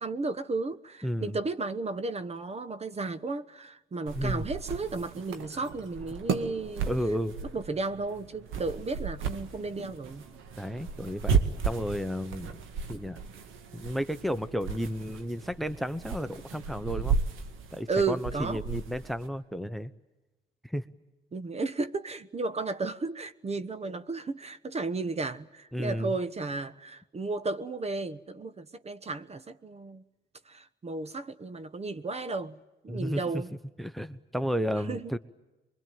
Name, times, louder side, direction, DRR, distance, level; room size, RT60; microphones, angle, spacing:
voice 1, 0.0-6.9 7.5-10.2 17.9-18.6 21.3-30.0 30.5-33.5 34.9-35.1, right 3 dB, 30° right, 1.1 m, -34 dB
voice 2, 1.0-1.4 4.1-4.4 6.9-7.3 10.6-11.4 11.6-12.6 12.9-13.2 13.7-17.2 17.7-19.9 20.6-20.8 25.7-26.1 32.9-33.4 33.8-35.2, equal, ahead, 1.0 m, -32 dB
sound 1, 4.1-19.3, right 6 dB, 85° right, 2.0 m, -34 dB
24.5 x 23.0 x 9.2 m
cardioid pair, 90°, 20 cm